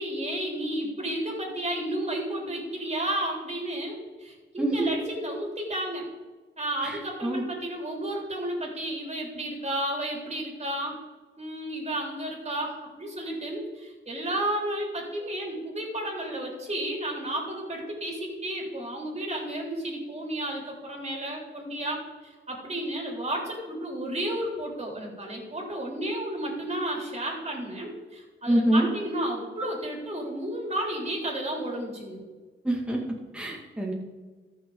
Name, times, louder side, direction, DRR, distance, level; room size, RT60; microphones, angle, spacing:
voice 1, 0.0-6.0 6.6-11.0 11.4-32.2, right 1 dB, 35° right, -1 dB, 3.3 m, -32 dB
voice 2, 4.6-4.9 6.8-7.4 28.5-28.9 32.6-33.0 33.3-33.9, right 1 dB, 5° right, -2 dB, 2.3 m, -25 dB
14.0 x 6.3 x 3.9 m, 1.4 s
cardioid pair, 80°, 20 cm